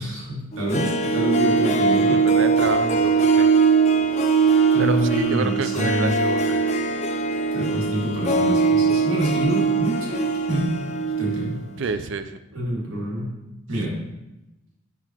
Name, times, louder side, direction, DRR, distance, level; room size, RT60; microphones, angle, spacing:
voice 1, 0.0-2.2 4.7-6.1 7.5-10.7 11.2-11.6 12.5-13.3 13.7-13.9, right 1 dB, 85° right, -4 dB, 2.0 m, -26 dB
Harp, 0.5-11.6 11.8-11.9, right 4 dB, 35° left, 0.4 m, -21 dB
voice 2, 2.1-3.5 4.3-4.5 4.8-6.6 11.8-12.4, right 4 dB, 60° right, 10 dB, 0.4 m, -29 dB
7.0 x 5.7 x 2.9 m, 0.96 s
head